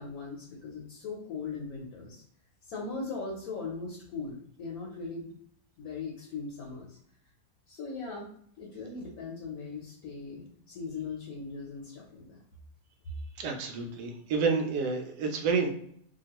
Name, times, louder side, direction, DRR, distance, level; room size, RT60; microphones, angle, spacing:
voice 1, 0.0-2.2 2.6-5.3 5.8-7.0 7.7-8.3 8.6-12.4, left 4 dB, 70° left, -3 dB, 1.1 m, -39 dB
voice 2, 13.4-15.7, right 4 dB, 85° right, 3 dB, 1.2 m, -29 dB
2.9 x 2.3 x 2.9 m, 0.64 s
omnidirectional pair, 1.7 m